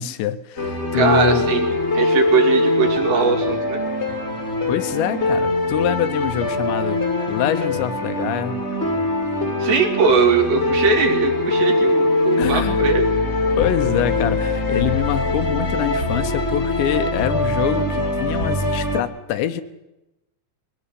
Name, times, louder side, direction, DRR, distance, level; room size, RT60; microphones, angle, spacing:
voice 1, 0.0-1.5 4.7-7.0 7.3-8.6 12.4-12.8 13.6-19.6, left 11 dB, 80° left, 10 dB, 3.1 m, -24 dB
sound 1, 0.6-19.0, left 2 dB, 25° left, 1.4 m, -22 dB
voice 2, 0.9-1.7 1.9-3.8 9.6-13.1, right 6 dB, 70° right, 1 dB, 4.8 m, -20 dB
21.5 x 18.0 x 8.4 m, 0.96 s
omnidirectional pair, 5.2 m